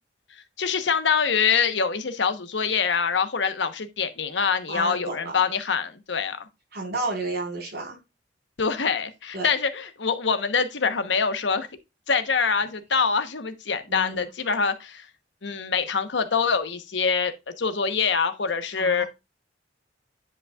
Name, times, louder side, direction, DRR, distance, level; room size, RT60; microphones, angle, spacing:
voice 1, 0.6-6.4 8.6-11.7 12.1-15.1 15.4-19.0, left 5 dB, 75° left, 1.0 m, -25 dB
voice 2, 4.7-5.3 6.7-8.0 9.3-9.5 13.9-14.1 18.8-19.1, right 3 dB, 60° right, 3.9 m, -31 dB
10.0 x 5.4 x 2.3 m
head